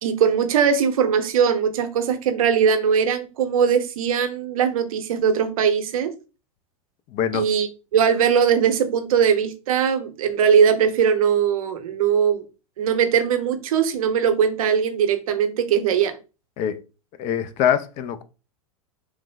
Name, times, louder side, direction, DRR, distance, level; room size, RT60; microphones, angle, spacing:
voice 1, 0.0-6.1 7.3-12.4 12.8-16.2, right 7 dB, 70° right, 0.7 m, -20 dB
voice 2, 7.1-7.4 16.6-16.8 17.2-18.2, left 9 dB, 40° left, 0.4 m, -23 dB
3.2 x 2.1 x 3.3 m
hypercardioid pair, 105°, 18 cm